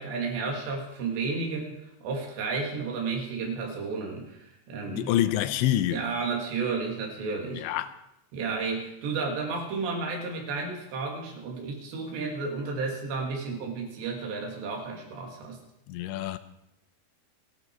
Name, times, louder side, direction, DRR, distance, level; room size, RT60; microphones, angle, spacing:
voice 1, 0.0-5.1 5.9-7.7 8.3-15.6, right 4 dB, 75° right, 4.7 m, -32 dB
voice 2, 4.9-6.1 7.5-7.9 15.9-16.4, left 12 dB, 90° left, 3.1 m, -27 dB
29.0 x 9.8 x 4.6 m
omnidirectional pair, 5.0 m